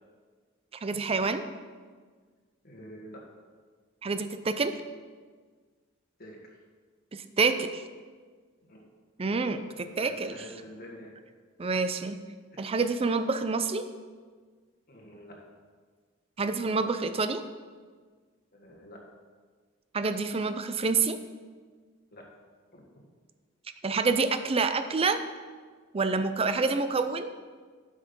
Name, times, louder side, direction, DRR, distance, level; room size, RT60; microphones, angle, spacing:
voice 1, 0.8-1.4 4.0-4.7 7.1-7.8 9.2-10.3 11.6-12.2 12.6-13.8 16.4-17.4 19.9-21.2 23.8-25.2 25.9-27.3, right 4 dB, 30° right, 10 dB, 0.5 m, -27 dB
voice 2, 2.6-3.2 6.2-6.6 8.6-8.9 9.8-11.1 11.7-11.8 12.5-12.7 14.9-15.4 18.5-19.0 22.1-22.3 22.7-22.8 26.5-26.7, equal, 50° left, 0 dB, 1.6 m, -48 dB
8.1 x 6.4 x 5.3 m, 1.5 s
head